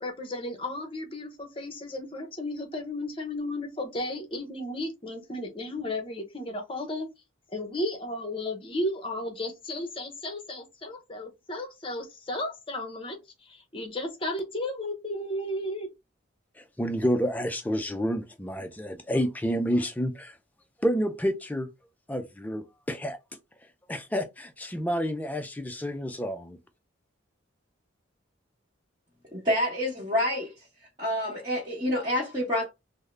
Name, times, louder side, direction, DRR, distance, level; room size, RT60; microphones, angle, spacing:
voice 1, 0.0-7.1 7.5-15.9, left 1 dB, 25° left, 0.7 m, -34 dB
voice 2, 16.8-20.3 20.8-21.7 22.1-23.2 23.9-26.6, equal, 10° left, 0.4 m, -29 dB
voice 3, 29.3-30.5 31.0-32.7, left 1 dB, 20° right, 1.2 m, -27 dB
3.5 x 2.1 x 3.2 m
head